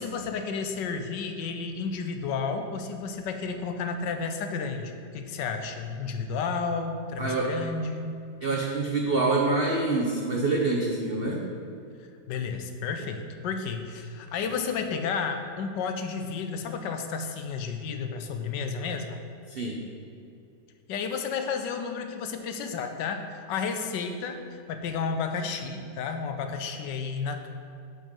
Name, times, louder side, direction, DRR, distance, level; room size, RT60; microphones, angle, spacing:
voice 1, 0.0-8.1 12.3-19.2 20.9-27.5, left 5 dB, 75° left, 6 dB, 1.2 m, -32 dB
voice 2, 7.2-7.5 8.4-11.5 19.5-19.8, right 3 dB, 75° right, -1 dB, 0.5 m, -26 dB
7.7 x 6.3 x 5.2 m, 2.5 s
omnidirectional pair, 2.1 m